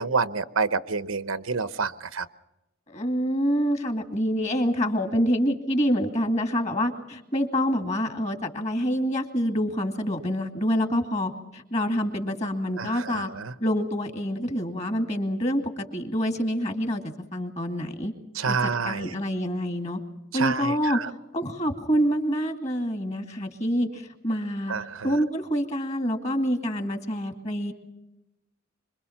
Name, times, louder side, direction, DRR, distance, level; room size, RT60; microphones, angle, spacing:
voice 1, 0.0-2.3 12.8-13.5 18.4-19.1 20.3-21.1 24.7-25.2, right 5 dB, 85° right, 13 dB, 0.9 m, -28 dB
voice 2, 2.9-13.3 13.6-17.0 17.3-18.1 18.5-20.0 20.3-21.0 21.3-24.8 25.0-27.7, equal, 35° left, 6 dB, 2.2 m, -26 dB
25.5 x 22.0 x 5.8 m, 0.95 s
head